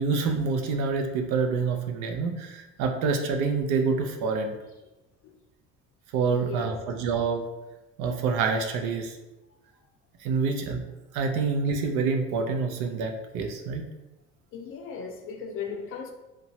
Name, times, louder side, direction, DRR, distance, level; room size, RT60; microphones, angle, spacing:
voice 1, 0.0-4.6 6.1-7.4 8.0-9.2 10.2-10.8 11.1-13.9, right 4 dB, 85° right, 4 dB, 0.5 m, -27 dB
voice 2, 6.3-6.8 14.5-16.1, left 5 dB, 45° left, 4 dB, 0.4 m, -37 dB
2.9 x 2.2 x 2.7 m, 1.0 s
cardioid pair, 130°, 29 cm